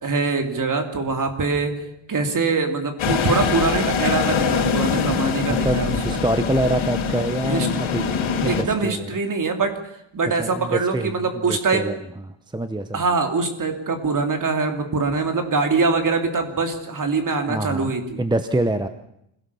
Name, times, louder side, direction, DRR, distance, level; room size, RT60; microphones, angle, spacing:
voice 1, 0.0-1.8 2.1-6.2 7.5-7.7 8.5-9.8 10.1-11.9 12.9-18.2, right 4 dB, 40° right, 6 dB, 3.1 m, -23 dB
sound 1, 3.0-8.6, left 6 dB, 85° left, 4.3 m, -23 dB
voice 2, 5.0-8.1 8.4-9.1 10.4-12.0 12.5-13.0 17.5-18.9, right 1 dB, 10° right, 9 dB, 0.9 m, -26 dB
26.0 x 17.0 x 7.0 m, 0.77 s
wide cardioid pair, 145°, 47 cm